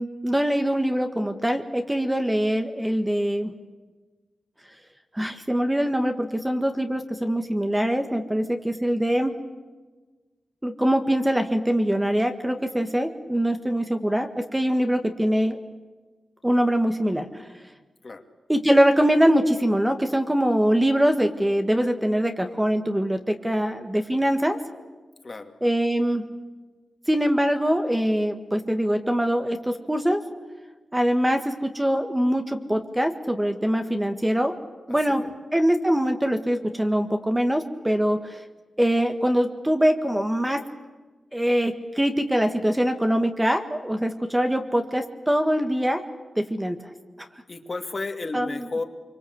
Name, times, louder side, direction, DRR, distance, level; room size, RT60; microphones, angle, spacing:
voice 1, 0.0-3.5 5.1-9.3 10.6-15.6 16.4-17.4 18.5-24.6 25.6-26.3 27.1-30.2 30.9-34.5 34.9-35.2 35.5-38.4 38.8-40.6 41.3-46.0 46.4-46.8 48.3-48.7, equal, 10° right, 6 dB, 1.7 m, -23 dB
voice 2, 25.2-25.7 34.9-35.3 47.5-48.8, left 3 dB, 40° left, 5 dB, 2.5 m, -33 dB
25.5 x 24.5 x 8.1 m, 1.3 s
wide cardioid pair, 100°, 0 cm